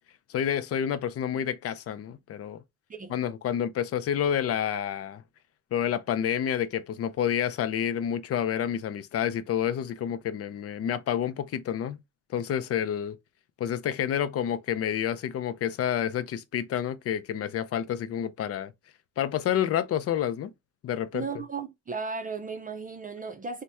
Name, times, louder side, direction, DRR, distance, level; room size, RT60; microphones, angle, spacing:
voice 1, 0.3-2.6 3.1-5.2 5.7-12.0 12.3-13.2 13.6-18.7 19.2-20.5 20.8-21.3, left 9 dB, 50° left, 0.5 m, -29 dB
voice 2, 21.1-23.6, right 4 dB, 30° right, 0.5 m, -35 dB
2.8 x 2.1 x 3.3 m
cardioid pair, 90°, 30 cm